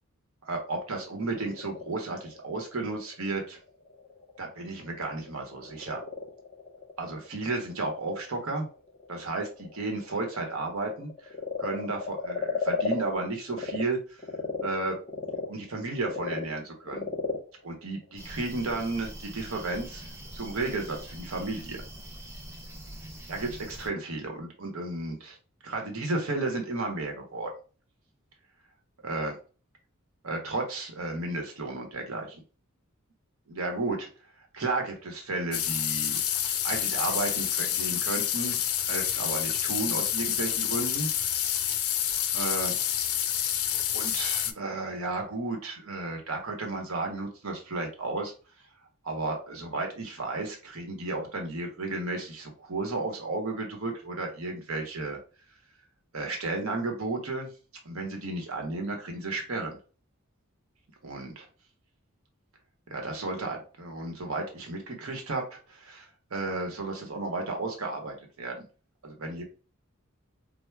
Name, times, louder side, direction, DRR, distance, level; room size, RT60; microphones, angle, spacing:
voice 1, 0.5-3.6 4.4-6.0 7.0-8.7 9.1-11.3 11.6-14.0 14.6-15.0 15.5-17.1 17.6-21.8 23.3-25.4 25.6-27.5 29.0-29.3 30.2-32.4 33.5-34.1 34.5-36.2 36.6-38.6 38.9-41.1 42.3-42.8 43.9-48.3 49.0-55.2 56.1-57.5 57.8-59.8 61.0-61.4 62.9-68.6 69.0-69.4, right 2 dB, 85° right, 2 dB, 0.9 m, -33 dB
Frog, 1.1-13.8 14.2-18.8, left 4 dB, 30° left, 0.6 m, -37 dB
sound 1, 18.2-23.9, right 1 dB, 15° right, 0.5 m, -43 dB
sound 2, 35.5-44.5, left 10 dB, 80° left, 0.4 m, -28 dB
4.4 x 2.0 x 2.2 m, 0.37 s
head